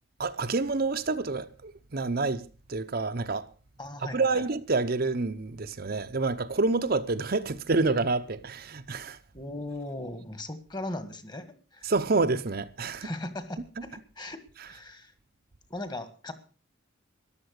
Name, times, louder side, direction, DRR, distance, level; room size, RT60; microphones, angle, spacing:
voice 1, 0.2-3.5 4.1-9.2 11.8-13.1, right 3 dB, 50° right, 0.8 m, -28 dB
voice 2, 3.8-4.4 9.3-11.9 13.0-15.1 15.7-16.3, left 1 dB, 20° left, 1.7 m, -38 dB
14.0 x 11.0 x 6.5 m
head